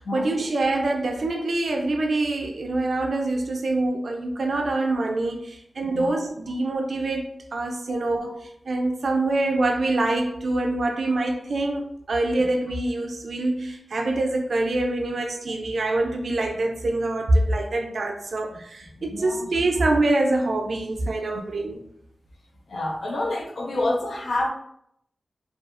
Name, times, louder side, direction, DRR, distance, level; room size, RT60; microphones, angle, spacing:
voice 1, 0.0-7.3 7.5-21.8, right 2 dB, 80° right, 0.4 m, -25 dB
voice 2, 18.9-19.5 22.7-24.5, left 2 dB, 85° left, 0.5 m, -28 dB
2.7 x 2.3 x 2.4 m
wide cardioid pair, 65°, 0 cm